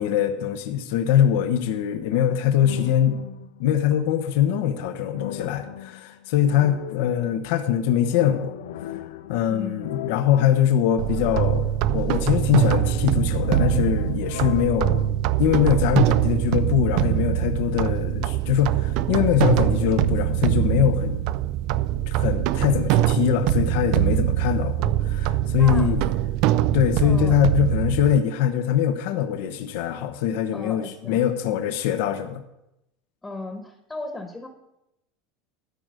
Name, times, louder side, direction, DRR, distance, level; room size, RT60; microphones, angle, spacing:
voice 1, 0.0-3.2 3.6-8.5 8.8-15.1 15.4-21.2 22.1-26.0 26.7-32.4, left 10 dB, 70° left, 7 dB, 0.9 m, -23 dB
sound 1, 2.5-3.8 5.1-7.6 8.1-12.2 12.5-15.1, left 11 dB, 90° left, 0.4 m, -38 dB
voice 2, 9.5-10.0 25.5-25.9 27.0-27.4 30.5-31.2 33.2-34.5, left 2 dB, 10° left, 4 dB, 1.2 m, -36 dB
sound 2, 11.0-28.2, right 12 dB, 55° right, 0.4 m, -23 dB
13.0 x 5.0 x 6.4 m, 0.87 s
supercardioid pair, 135°, 0 cm